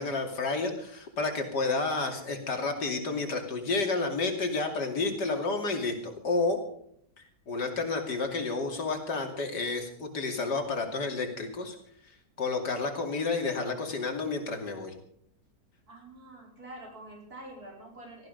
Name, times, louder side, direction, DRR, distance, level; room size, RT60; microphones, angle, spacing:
voice 1, 0.0-6.6 7.5-11.7 12.4-14.9, left 3 dB, 80° left, 4 dB, 3.2 m, -30 dB
voice 2, 15.9-18.3, right 1 dB, 60° right, 0 dB, 5.6 m, -46 dB
18.5 x 14.0 x 5.3 m, 0.66 s
omnidirectional pair, 1.8 m